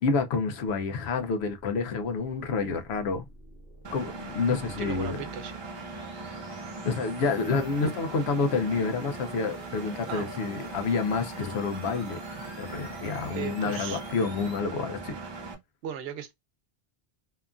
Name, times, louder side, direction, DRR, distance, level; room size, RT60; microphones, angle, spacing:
voice 1, 0.0-3.3 3.9-5.2 6.9-12.2 12.6-15.1, left 4 dB, 90° left, 0.9 m, -28 dB
sound 1, 1.6-14.6, left 1 dB, 55° left, 1.1 m, -51 dB
Engine, 3.8-15.5, right 3 dB, 40° right, 0.4 m, -40 dB
voice 2, 4.8-5.5 7.8-7.9 10.1-10.3 13.3-14.0 15.8-16.3, right 9 dB, 75° right, 0.8 m, -36 dB
2.9 x 2.3 x 2.4 m
omnidirectional pair, 1.0 m